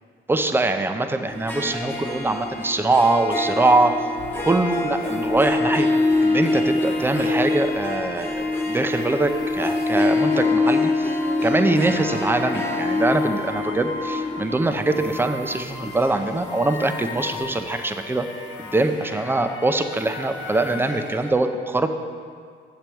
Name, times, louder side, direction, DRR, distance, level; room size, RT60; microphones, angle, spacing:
voice 1, 0.3-3.9 4.4-5.9 6.2-18.3 18.6-21.9, right 2 dB, 10° right, 7 dB, 0.5 m, -23 dB
Harp, 1.3-16.6, left 2 dB, 10° left, 0.9 m, -25 dB
sound 1, 4.2-21.3, left 3 dB, 70° left, 1.2 m, -37 dB
8.6 x 6.5 x 4.6 m, 2.1 s
cardioid pair, 90°, 20 cm